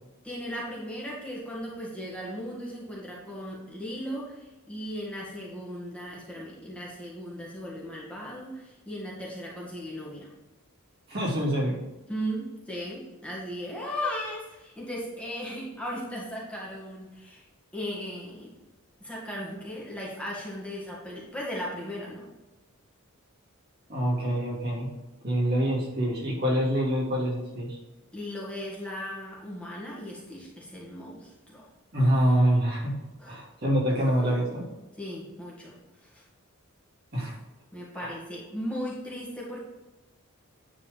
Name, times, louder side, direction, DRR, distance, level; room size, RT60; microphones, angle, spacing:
voice 1, 0.2-10.3 12.1-17.4 17.7-18.5 19.0-22.2 28.1-31.7 33.2-33.4 35.0-35.7 36.0-36.2 37.7-39.6, equal, 5° left, -5 dB, 2.1 m, -37 dB
voice 2, 11.1-11.8 23.9-24.9 25.2-27.8 31.9-32.9 33.3-34.7 37.1-37.4 37.9-38.1, equal, 45° right, -4 dB, 2.7 m, -26 dB
10.0 x 4.7 x 5.3 m, 1.1 s
head